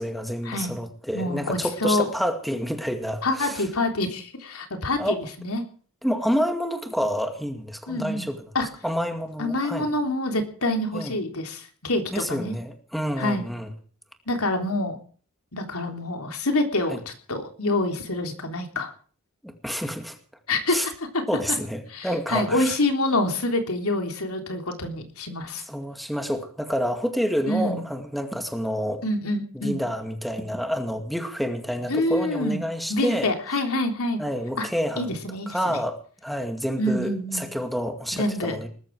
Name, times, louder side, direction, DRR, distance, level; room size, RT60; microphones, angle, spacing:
voice 1, 0.0-3.7 5.0-5.2 6.0-8.4 8.8-9.9 10.9-11.2 12.1-13.7 16.9-17.0 19.4-20.2 20.7-20.9 21.3-22.8 25.6-29.0 29.5-33.3 34.2-35.2 35.5-38.7, equal, ahead, 5 dB, 2.2 m, -28 dB
voice 2, 1.1-2.1 3.2-5.6 7.9-8.3 8.5-8.7 9.4-12.5 13.2-13.5 14.3-15.0 15.5-18.9 20.5-20.9 21.9-25.6 27.4-27.8 29.0-29.8 31.9-32.6 32.9-34.2 34.6-34.7 35.0-35.8 36.8-37.4 38.1-38.6, left 2 dB, 80° left, 4 dB, 3.6 m, -26 dB
20.0 x 13.5 x 4.8 m, 0.43 s
head